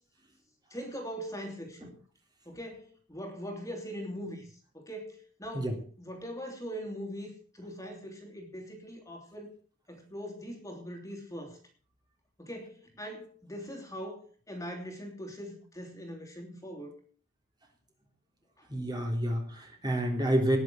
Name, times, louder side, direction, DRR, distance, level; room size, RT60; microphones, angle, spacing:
voice 1, 0.7-1.9 2.4-9.5 9.9-11.6 12.4-17.0 18.6-18.7, equal, 15° left, 2 dB, 3.0 m, -41 dB
voice 2, 18.7-20.6, right 1 dB, 20° right, 2 dB, 3.3 m, -28 dB
19.5 x 7.0 x 7.8 m, 0.43 s
head